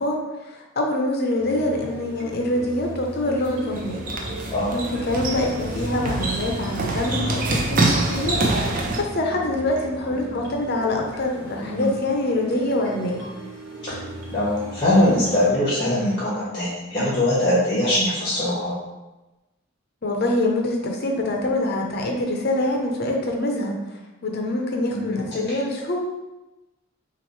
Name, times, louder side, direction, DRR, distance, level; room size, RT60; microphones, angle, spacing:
voice 1, 0.0-4.0 4.4-13.3 20.0-26.0, left 1 dB, 50° left, 1 dB, 0.8 m, -25 dB
sound 1, 1.4-15.5, equal, 55° right, 1.1 m, -38 dB
sound 2, 3.4-9.0, right 2 dB, 40° right, 0.6 m, -25 dB
voice 2, 14.3-18.7 24.9-25.4, left 1 dB, 20° left, -9 dB, 1.3 m, -22 dB
6.1 x 2.5 x 3.2 m, 1.1 s
head